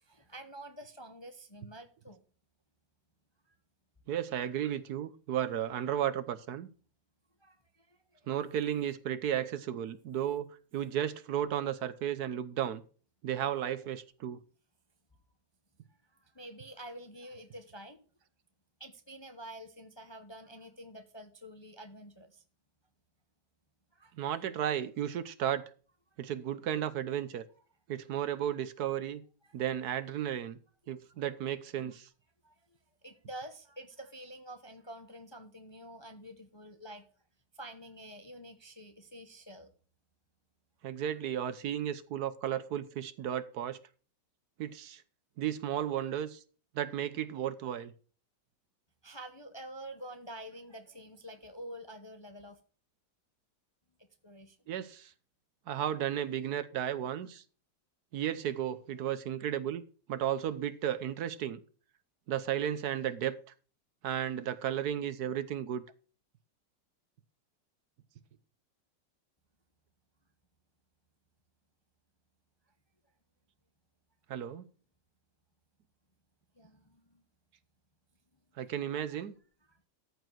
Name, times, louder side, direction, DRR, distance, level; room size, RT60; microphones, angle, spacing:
voice 1, 0.0-2.2 3.5-3.6 7.4-8.3 16.0-18.0 18.8-22.4 23.9-24.3 29.4-29.5 30.4-30.5 32.4-37.1 37.5-39.7 49.0-52.6 54.2-54.6 76.5-77.2 79.7-79.8, right 1 dB, 25° left, 0.7 m, -48 dB
voice 2, 4.1-6.7 8.3-12.8 13.2-14.4 24.2-25.6 26.2-27.4 27.9-29.2 29.5-30.6 30.9-32.1 40.8-43.8 44.6-45.0 45.4-46.4 46.7-47.9 54.7-55.1 55.7-57.4 58.1-59.8 60.1-61.6 62.3-63.4 64.0-65.8 74.3-74.6 78.6-79.3, right 10 dB, 70° right, 1.3 m, -34 dB
14.0 x 5.0 x 6.0 m
omnidirectional pair, 1.8 m